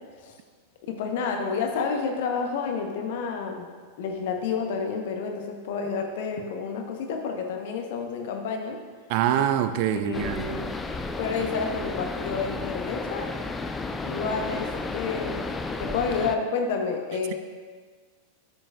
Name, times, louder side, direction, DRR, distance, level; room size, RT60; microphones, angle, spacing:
voice 1, 0.8-3.7 4.0-8.8 9.9-10.7 11.2-13.3 14.0-15.5 15.8-17.3, left 5 dB, 55° left, 3 dB, 1.1 m, -30 dB
voice 2, 9.1-10.5, right 10 dB, 45° right, 10 dB, 0.4 m, -24 dB
sound 1, 10.1-16.4, left 3 dB, 15° left, 0.5 m, -33 dB
12.5 x 6.3 x 2.5 m, 1.5 s
figure-of-eight pair, 90°, 0 cm